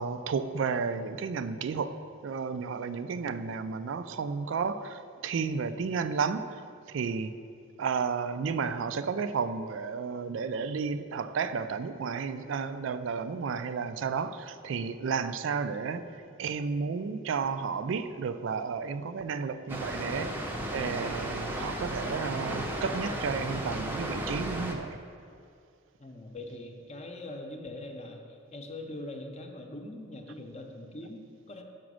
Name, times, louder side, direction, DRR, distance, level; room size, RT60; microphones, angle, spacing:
voice 1, 0.0-7.4 7.8-25.0, right 5 dB, 65° right, 11 dB, 0.3 m, -32 dB
Water, 19.7-24.7, right 1 dB, 10° right, 0.6 m, -34 dB
voice 2, 26.0-31.6, left 1 dB, 35° left, 3 dB, 0.7 m, -42 dB
6.0 x 5.1 x 6.2 m, 2.4 s
head